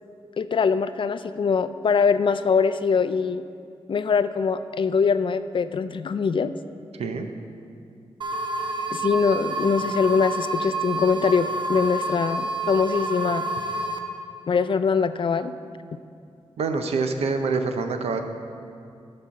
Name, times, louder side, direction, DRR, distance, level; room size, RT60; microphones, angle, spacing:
voice 1, 0.4-3.4 3.9-6.5 8.9-13.5 14.5-15.5, left 5 dB, 55° left, 11 dB, 0.4 m, -23 dB
sound 1, 8.2-14.0, right 2 dB, 50° right, 0.9 m, -29 dB
voice 2, 16.6-18.2, right 4 dB, 85° right, 6 dB, 0.6 m, -26 dB
11.0 x 4.4 x 6.2 m, 2.4 s
cardioid pair, 60°, 10 cm